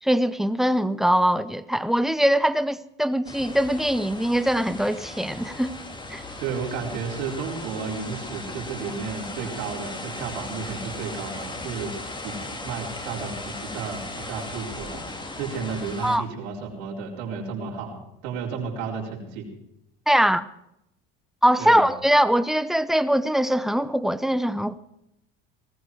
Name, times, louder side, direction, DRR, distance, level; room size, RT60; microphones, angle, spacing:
voice 1, 0.0-5.8 6.1-6.2 16.0-16.2 20.1-20.5 21.4-24.8, equal, ahead, 0.7 m, -22 dB
sound 1, 3.2-16.2, left 2 dB, 15° left, 2.2 m, -37 dB
voice 2, 6.4-11.9 12.2-15.1 15.4-19.5 21.6-21.9, right 5 dB, 75° right, 4.7 m, -32 dB
19.5 x 14.5 x 4.8 m
supercardioid pair, 105°, 30 cm